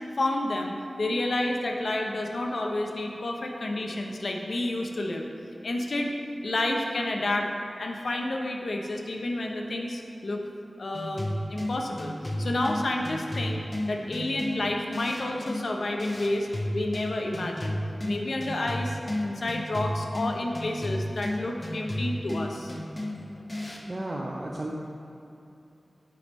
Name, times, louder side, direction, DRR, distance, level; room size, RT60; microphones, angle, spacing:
voice 1, 0.2-5.3 5.6-6.1 6.4-7.5 7.8-10.4 10.8-13.6 13.9-16.5 16.7-22.7, left 1 dB, 75° left, 2 dB, 0.6 m, -30 dB
sound 1, 10.9-23.9, left 1 dB, 35° left, 0.8 m, -33 dB
voice 2, 23.9-24.7, right 1 dB, 45° right, -2 dB, 0.5 m, -33 dB
8.4 x 3.4 x 4.0 m, 2.8 s
cardioid pair, 45°, 0 cm